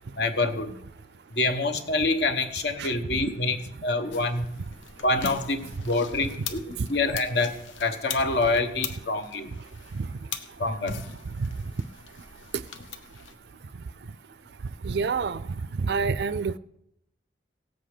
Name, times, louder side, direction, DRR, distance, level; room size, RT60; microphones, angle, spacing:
voice 1, 0.2-0.7 1.3-3.6 3.8-4.5 5.0-7.5 7.8-9.5 10.6-11.0, left 3 dB, 60° left, 8 dB, 1.1 m, -26 dB
sound 1, 4.1-13.3, left 6 dB, 90° left, 0.9 m, -41 dB
voice 2, 14.8-15.4 15.8-16.6, right 4 dB, 60° right, 16 dB, 0.4 m, -27 dB
17.5 x 7.9 x 5.0 m, 0.81 s
head